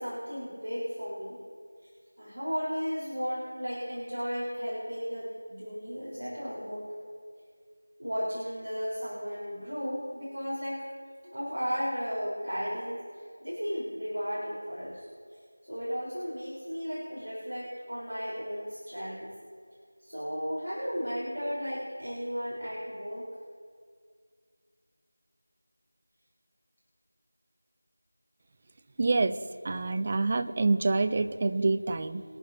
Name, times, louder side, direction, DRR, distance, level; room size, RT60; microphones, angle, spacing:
voice 1, 0.0-1.4 2.2-6.9 8.0-10.8 11.2-15.1 15.7-19.3 20.0-23.3, equal, 70° right, -6 dB, 4.0 m, -34 dB
voice 2, 29.0-29.3 29.6-32.2, right 3 dB, 20° right, 9 dB, 0.5 m, -26 dB
22.5 x 11.5 x 2.7 m, 2.1 s
figure-of-eight pair, 175°, 0 cm